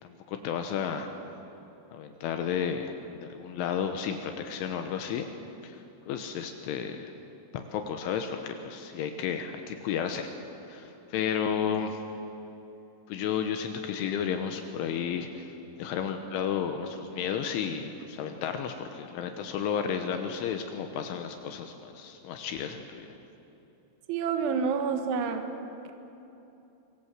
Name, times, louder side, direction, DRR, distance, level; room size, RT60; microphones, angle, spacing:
voice 1, 0.0-1.1 1.9-2.9 3.2-5.3 5.6-5.8 6.1-7.1 7.5-10.3 10.7-12.0 13.1-15.5 15.8-23.1, left 7 dB, 80° left, 6 dB, 3.5 m, -32 dB
voice 2, 24.1-25.4, right 6 dB, 75° right, 6 dB, 3.8 m, -28 dB
25.0 x 23.5 x 7.6 m, 2.9 s
omnidirectional pair, 5.7 m